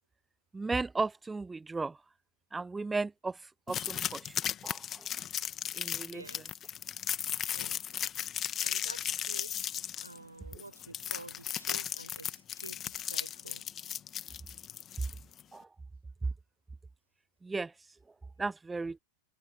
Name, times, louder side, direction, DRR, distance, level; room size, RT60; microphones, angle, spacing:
voice 1, 0.5-2.0 2.5-4.4 4.6-5.1 5.7-6.2 15.5-15.7 17.4-17.7 18.4-19.0, right 3 dB, 10° right, 0.6 m, -35 dB
sound 1, 3.7-15.4, left 10 dB, 25° left, 2.0 m, -36 dB
voice 2, 6.1-6.5 7.5-7.9 8.6-9.7 10.0-13.6, right 2 dB, 85° right, 7.6 m, -49 dB
figure-of-eight pair, 90°, 0 cm